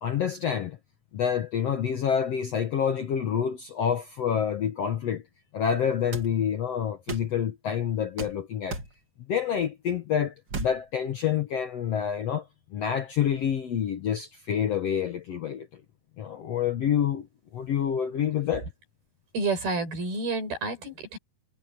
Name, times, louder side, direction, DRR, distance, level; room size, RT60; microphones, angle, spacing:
voice 1, 0.0-0.8 1.1-5.2 5.5-8.8 9.3-12.5 12.7-15.8 16.2-17.3 17.5-18.7, left 8 dB, 60° left, 1.7 m, -27 dB
sound 1, 6.1-6.3 7.1-7.3 8.2-8.4 8.7-8.9 10.5-10.8, right 3 dB, 35° right, 2.5 m, -34 dB
voice 2, 19.3-21.2, right 3 dB, 75° right, 8.8 m, -29 dB
omnidirectional pair, 4.3 m